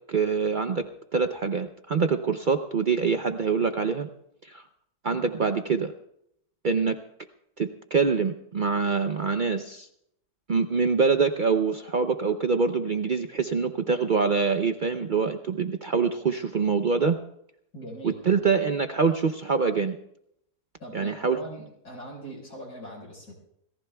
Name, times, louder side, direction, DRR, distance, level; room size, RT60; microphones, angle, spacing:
voice 1, 0.1-4.1 4.4-4.6 5.0-5.9 6.6-7.0 7.6-9.9 10.5-17.2 18.0-20.0 20.9-21.4, right 5 dB, 75° right, 7 dB, 0.4 m, -25 dB
voice 2, 17.7-18.2 20.8-23.3, right 1 dB, 65° left, -3 dB, 5.4 m, -41 dB
27.5 x 18.0 x 2.3 m, 0.76 s
omnidirectional pair, 1.7 m